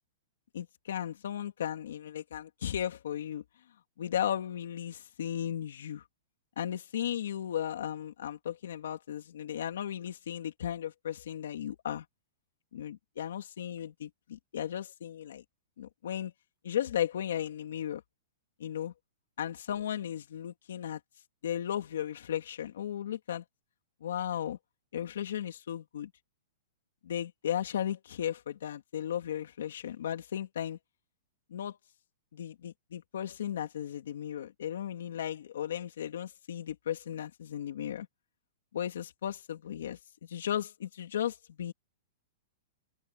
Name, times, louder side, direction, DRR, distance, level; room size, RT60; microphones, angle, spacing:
voice 1, 0.5-3.4 4.0-6.0 6.6-12.0 12.7-15.4 15.8-16.3 16.6-18.0 18.6-18.9 19.4-21.0 21.4-23.4 24.0-24.6 24.9-26.1 27.0-30.8 31.5-31.8 32.3-38.1 38.7-40.0 40.3-41.7, left 10 dB, 75° left, 2.9 m, -35 dB
hypercardioid pair, 160°, 0 cm